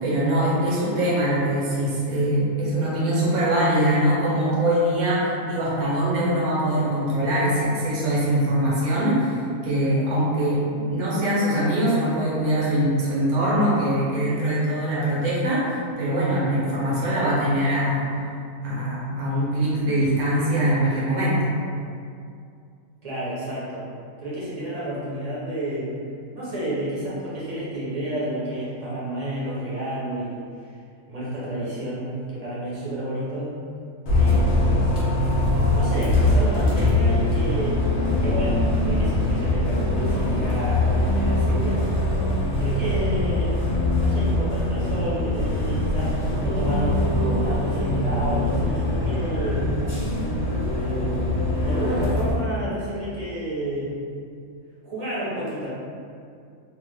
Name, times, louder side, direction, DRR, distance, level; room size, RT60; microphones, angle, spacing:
voice 1, 0.0-10.6 10.9-18.0 18.6-21.4, right 1 dB, 90° right, -7 dB, 1.2 m, -22 dB
voice 2, 23.0-23.9 24.2-25.9 26.3-30.4 31.1-33.5 34.1-34.9 35.7-37.8 38.1-41.8 42.6-43.6 43.9-49.7 50.7-51.3 51.6-53.9 54.8-55.7, right 1 dB, 50° right, -10 dB, 0.4 m, -30 dB
Bus, 34.1-52.3, left 1 dB, 55° left, 0.9 m, -22 dB
2.8 x 2.0 x 3.2 m, 2.3 s
omnidirectional pair, 1.5 m